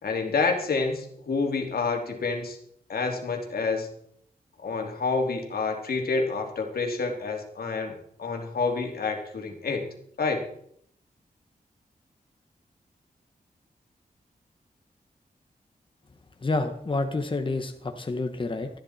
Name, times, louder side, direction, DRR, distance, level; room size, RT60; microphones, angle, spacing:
voice 1, 0.0-2.6 2.9-3.9 4.6-7.9 8.2-9.8 10.2-10.4, left 4 dB, 80° left, 3 dB, 3.0 m, -28 dB
voice 2, 16.4-18.7, left 3 dB, 35° left, 6 dB, 1.5 m, -28 dB
19.5 x 13.5 x 4.4 m, 0.67 s
wide cardioid pair, 95°, 15 cm